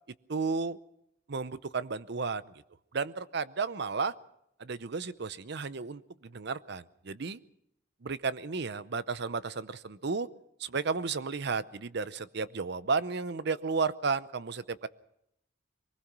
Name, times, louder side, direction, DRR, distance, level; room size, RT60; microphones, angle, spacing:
voice 1, 0.3-0.8 1.3-2.5 2.9-4.1 4.6-7.4 8.0-10.3 10.6-14.9, right 4 dB, 60° right, 16 dB, 0.7 m, -33 dB
23.5 x 20.0 x 6.0 m, 0.78 s
head